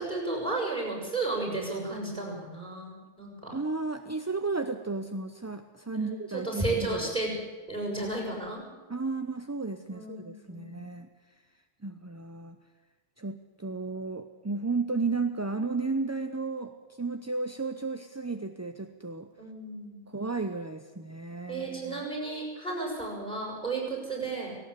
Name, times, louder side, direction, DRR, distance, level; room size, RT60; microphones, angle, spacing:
voice 1, 0.0-3.5 6.0-7.3 7.7-8.6 9.9-10.8 19.4-20.0 21.5-24.6, right 2 dB, 5° left, -1 dB, 6.7 m, -33 dB
voice 2, 3.5-7.1 8.9-11.1 11.8-12.6 13.2-16.7 17.0-19.3 20.1-22.0, right 3 dB, 15° right, 7 dB, 0.6 m, -33 dB
18.0 x 17.5 x 8.3 m, 1.4 s
omnidirectional pair, 1.2 m